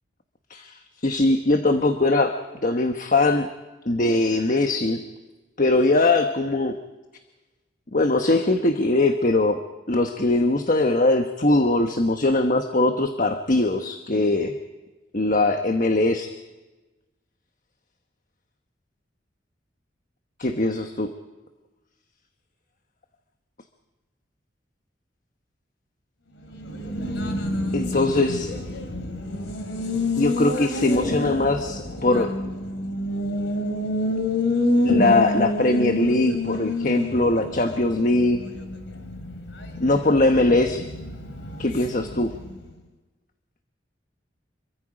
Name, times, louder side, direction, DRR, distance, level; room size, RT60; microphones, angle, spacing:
voice 1, 1.0-3.5 3.9-5.0 5.6-6.8 7.9-9.6 9.9-14.6 15.1-16.3 20.4-21.1 27.7-28.5 30.2-32.3 34.8-38.4 39.8-40.9 41.6-42.3, left 2 dB, 45° left, 6 dB, 1.2 m, -21 dB
Race car auto racing, 26.4-42.7, left 1 dB, 75° left, 3.1 m, -28 dB
26.5 x 23.5 x 5.1 m, 1.2 s
head